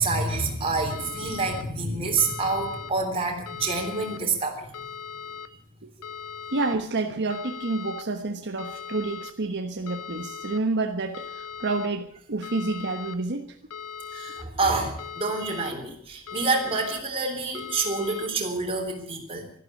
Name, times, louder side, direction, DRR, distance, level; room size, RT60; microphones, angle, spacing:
voice 1, 0.0-4.7 14.1-19.5, right 3 dB, 25° right, 1 dB, 3.3 m, -27 dB
sound 1, 0.9-1.6 2.2-2.9 3.5-4.2 4.7-5.5 6.0-6.7 7.3-8.0 8.6-9.3 9.9-10.6 11.1-11.9 12.4-13.2 13.7-14.4 15.0-15.7 16.3-17.0 17.5-18.3, left 7 dB, 90° left, 1.1 m, -39 dB
voice 2, 6.5-13.5, right 3 dB, 50° right, 4 dB, 1.2 m, -29 dB
12.5 x 12.0 x 9.6 m, 0.65 s
head